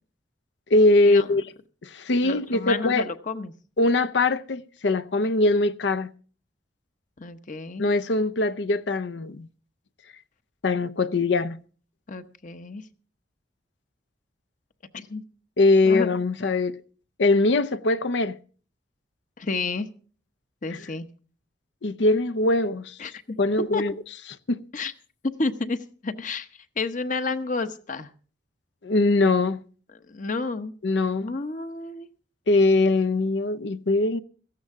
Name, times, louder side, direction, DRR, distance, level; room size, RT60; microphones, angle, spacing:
voice 1, 0.7-1.4 1.8-3.0 3.8-6.1 7.8-9.5 10.6-11.6 15.6-16.7 17.2-18.4 20.7-20.8 21.8-23.0 23.4-23.9 24.5-24.6 28.8-29.6 30.8-31.3 32.5-34.2, left 2 dB, 70° left, 0.7 m, -22 dB
voice 2, 2.2-3.5 7.2-7.9 12.1-12.8 14.9-15.2 15.8-16.6 19.4-19.9 20.6-21.1 23.0-23.4 23.7-23.8 24.7-24.9 25.4-26.5 26.8-28.1 30.1-30.7 31.2-32.1, left 3 dB, 45° left, 0.9 m, -31 dB
17.5 x 14.0 x 3.6 m
head